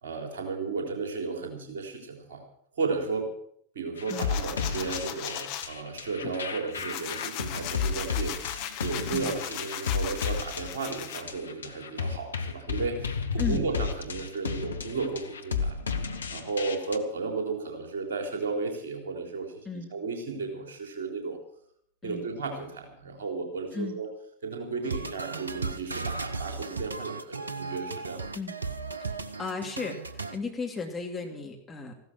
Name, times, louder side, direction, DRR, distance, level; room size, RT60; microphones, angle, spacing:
voice 1, 0.0-2.4 2.8-3.3 3.7-15.8 16.3-19.6 19.9-21.4 22.0-24.1 24.4-28.3, right 4 dB, 60° right, 3 dB, 3.8 m, -34 dB
sound 1, 4.0-17.0, left 5 dB, 70° left, 1.2 m, -33 dB
sound 2, 4.1-5.7 6.2-11.2, left 11 dB, 45° left, 1.3 m, -38 dB
sound 3, 24.8-30.4, right 4 dB, 75° right, 0.9 m, -35 dB
voice 2, 29.4-31.9, left 4 dB, 10° left, 1 dB, 2.8 m, -35 dB
15.5 x 12.5 x 6.2 m, 0.67 s
figure-of-eight pair, 90°, 0 cm